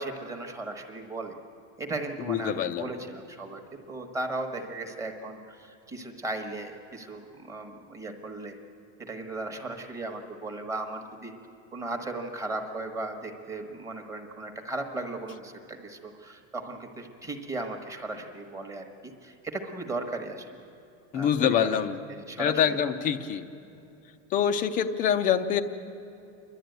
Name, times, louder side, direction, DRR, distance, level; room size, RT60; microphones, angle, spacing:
voice 1, 0.0-1.3 1.8-3.6 3.9-8.5 9.0-11.3 11.7-20.6 21.1-21.8 22.1-22.8, right 2 dB, 10° right, 3 dB, 1.2 m, -36 dB
voice 2, 2.3-2.9 21.1-22.0 22.4-23.4 24.3-25.6, left 8 dB, 20° left, 9 dB, 0.6 m, -25 dB
28.5 x 12.0 x 9.2 m, 2.9 s
supercardioid pair, 175°, 37 cm